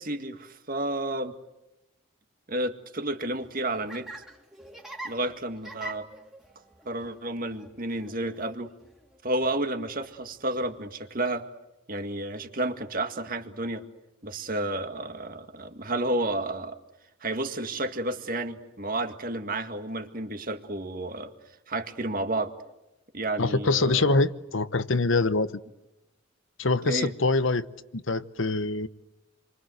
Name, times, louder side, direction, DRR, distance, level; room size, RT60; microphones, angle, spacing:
voice 1, 0.0-1.3 2.5-4.1 5.0-6.1 6.9-8.7 9.2-11.4 11.9-13.8 14.2-16.8 17.2-21.3 21.7-22.5 23.1-24.3 26.8-27.1, right 1 dB, 45° right, 2.0 m, -31 dB
Laughter, 3.4-10.8, right 1 dB, ahead, 2.7 m, -46 dB
voice 2, 23.4-25.6 26.6-27.7 27.9-28.9, left 3 dB, 70° left, 1.0 m, -24 dB
30.0 x 24.0 x 8.0 m
head